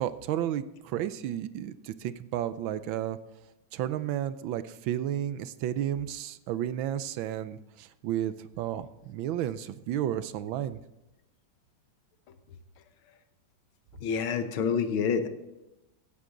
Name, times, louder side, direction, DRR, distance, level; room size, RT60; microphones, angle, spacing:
voice 1, 0.0-3.2 3.7-10.8, right 11 dB, 75° right, 14 dB, 1.3 m, -32 dB
voice 2, 14.0-15.3, left 6 dB, 80° left, 9 dB, 1.8 m, -27 dB
16.0 x 9.8 x 3.8 m, 0.94 s
omnidirectional pair, 2.3 m